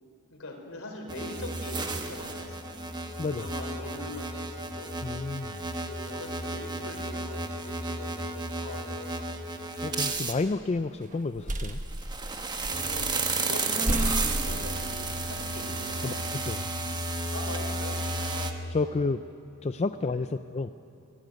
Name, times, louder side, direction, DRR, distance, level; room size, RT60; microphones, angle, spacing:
voice 1, 0.3-2.9 3.3-5.0 5.8-9.4 9.8-10.1 12.6-16.3 17.3-19.0 20.0-20.3, left 1 dB, 70° left, 2 dB, 4.5 m, -42 dB
sound 1, 1.1-10.3 11.8-18.5, right 2 dB, 20° right, 1.3 m, -33 dB
voice 2, 3.2-3.5 5.0-5.7 9.8-11.8 16.0-16.7 18.7-19.2 19.6-20.7, left 3 dB, 30° left, 10 dB, 0.4 m, -30 dB
sound 2, 10.1-10.6 11.1-13.2 13.5-13.6 13.9-15.4, right 1 dB, 35° right, 1.2 m, -33 dB
23.5 x 16.0 x 9.3 m, 2.7 s
head